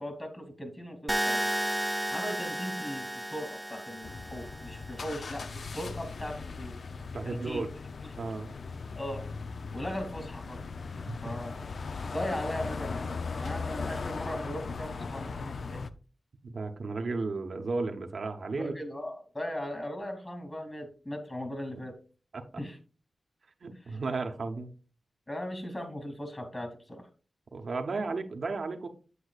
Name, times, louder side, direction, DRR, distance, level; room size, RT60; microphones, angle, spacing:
voice 1, 0.0-1.5 2.1-5.5 5.7-6.8 7.2-7.6 8.9-9.3 9.7-10.6 11.2-11.6 12.1-15.8 18.5-21.9 22.6-22.8 25.3-27.1, left 1 dB, 25° left, 6 dB, 2.6 m, -38 dB
sound 1, 1.1-5.1, equal, 5° right, 0.7 m, -33 dB
sound 2, 4.0-15.9, left 4 dB, 70° left, 0.4 m, -38 dB
voice 2, 7.1-7.7 8.2-8.5 11.1-11.2 16.4-18.7 22.3-22.4 23.6-24.7 27.5-28.9, right 3 dB, 70° right, 4 dB, 0.8 m, -34 dB
8.1 x 7.8 x 2.4 m, 0.38 s
cardioid pair, 55°, 0 cm